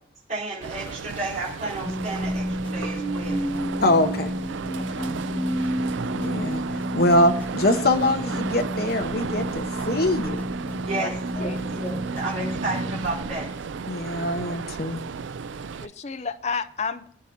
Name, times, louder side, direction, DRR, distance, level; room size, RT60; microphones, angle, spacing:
voice 1, 0.3-3.4 10.7-13.5, right 2 dB, 40° right, 4.4 m, -32 dB
sound 1, 0.6-15.9, right 5 dB, 85° right, 0.4 m, -34 dB
sound 2, 0.9-3.0 3.2-4.5 4.7-5.4 5.6-12.5 12.7-13.4, left 1 dB, 10° left, 3.1 m, -49 dB
sound 3, 1.8-14.0, equal, 20° right, 5.3 m, -30 dB
voice 2, 3.8-4.3 6.1-10.4 13.9-15.0, left 1 dB, 55° left, 1.1 m, -23 dB
voice 3, 4.8-5.1 10.9-11.1 11.4-11.6 15.8-17.1, left 5 dB, 35° left, 0.6 m, -31 dB
23.5 x 9.3 x 2.8 m
head